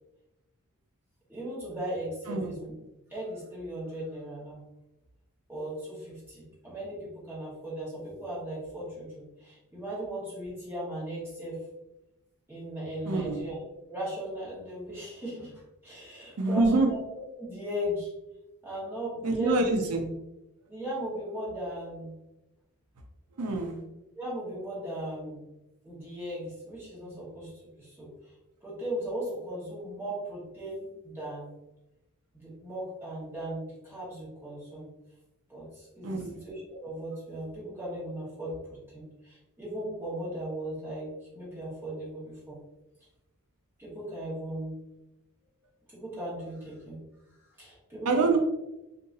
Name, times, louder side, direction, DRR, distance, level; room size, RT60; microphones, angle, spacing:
voice 1, 1.3-2.7 3.1-4.6 5.5-11.6 12.5-13.6 13.9-17.0 17.4-18.1 18.6-19.7 20.7-22.1 24.1-25.4 25.8-28.1 28.6-31.5 32.4-34.9 35.5-38.5 38.9-41.1 41.3-42.6 43.8-44.8 45.9-47.0 47.6-48.4, right 1 dB, 10° right, -8 dB, 1.2 m, -37 dB
voice 2, 13.1-13.4 16.4-16.9 19.2-20.1 23.4-23.8 36.0-36.4 48.1-48.4, right 3 dB, 80° right, 3 dB, 0.5 m, -26 dB
3.8 x 2.6 x 2.6 m, 0.94 s
head